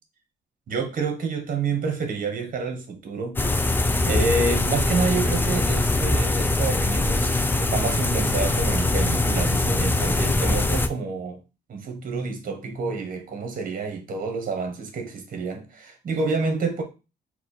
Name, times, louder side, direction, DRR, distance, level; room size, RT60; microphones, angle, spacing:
voice 1, 0.7-11.4 11.7-16.8, right 4 dB, 50° right, 1.2 m, -28 dB
sound 1, 3.4-10.9, left 2 dB, 10° left, 0.3 m, -22 dB
4.4 x 2.2 x 4.2 m
cardioid pair, 135°, 18 cm